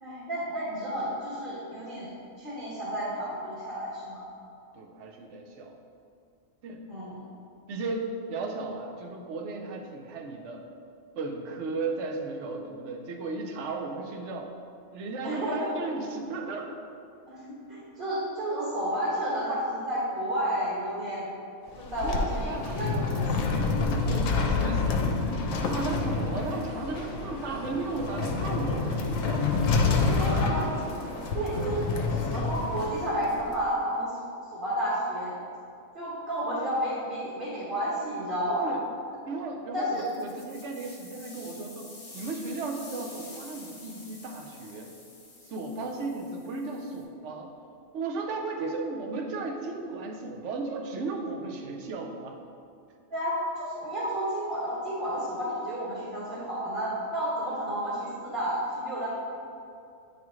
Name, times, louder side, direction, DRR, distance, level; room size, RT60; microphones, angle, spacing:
voice 1, 0.0-2.1 2.4-4.2 6.9-7.2 15.2-15.7 17.3-21.3 21.8-23.5 30.1-30.7 31.3-31.8 32.2-34.1 34.5-35.4 35.9-38.7 39.7-40.0 41.2-41.6 53.1-59.1, equal, 40° right, -9 dB, 1.5 m, -31 dB
voice 2, 4.8-5.8 6.6-6.9 7.7-10.6 11.2-14.5 14.9-16.7 22.0-25.1 25.5-29.5 30.1-30.4 31.6-31.7 38.5-38.8 39.3-44.9 45.4-47.5 47.9-52.4, right 3 dB, 65° right, 2 dB, 0.9 m, -35 dB
sound 1, 21.7-33.6, left 4 dB, 75° left, 0.9 m, -28 dB
sound 2, 25.5-33.0, right 1 dB, 80° right, 1.2 m, -42 dB
sound 3, 39.9-47.0, left 2 dB, 30° left, 0.9 m, -48 dB
9.3 x 3.6 x 3.1 m, 2.5 s
omnidirectional pair, 1.4 m